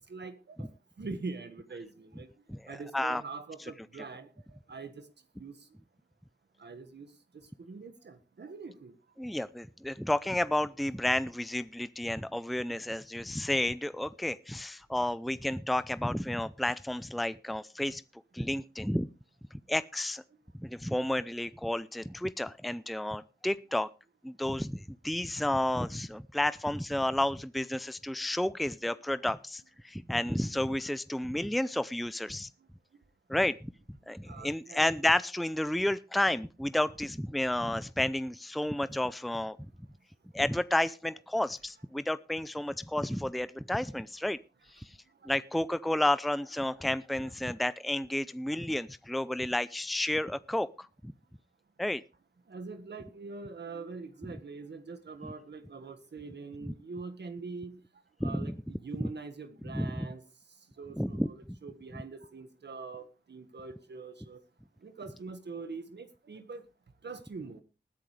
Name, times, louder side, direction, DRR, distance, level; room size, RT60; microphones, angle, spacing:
voice 1, 0.1-0.7 1.0-2.3 2.7-4.3 4.7-5.0 5.4-5.6 6.6-7.1 7.6-8.9 30.5-30.6 34.3-34.9 45.2-45.3 52.5-57.8 58.2-60.2 60.8-64.4 64.8-66.6 67.0-67.6, right 4 dB, 90° right, 9 dB, 1.6 m, -43 dB
voice 2, 2.5-3.2 9.2-19.1 19.7-20.2 20.6-23.9 24.2-32.5 33.3-39.6 40.3-44.4 44.7-45.0 45.2-51.1 51.8-52.0 56.7-56.8 58.2-58.6 59.0-59.1 59.7-60.1 61.0-61.6, left 1 dB, ahead, 15 dB, 0.6 m, -31 dB
19.5 x 10.5 x 3.3 m, 0.30 s
cardioid pair, 50°, 17 cm